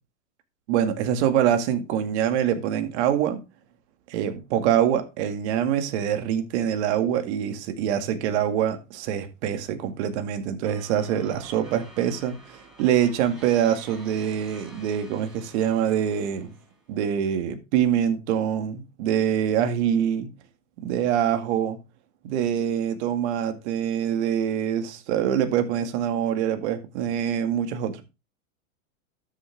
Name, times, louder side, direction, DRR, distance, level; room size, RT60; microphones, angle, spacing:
voice 1, 0.7-3.4 4.1-16.5 16.9-20.3 20.8-21.8 22.2-28.0, right 9 dB, 60° right, 2.1 m, -25 dB
sound 1, 10.6-16.9, right 2 dB, ahead, 5.4 m, -49 dB
12.5 x 6.7 x 3.5 m
supercardioid pair, 145°, 39 cm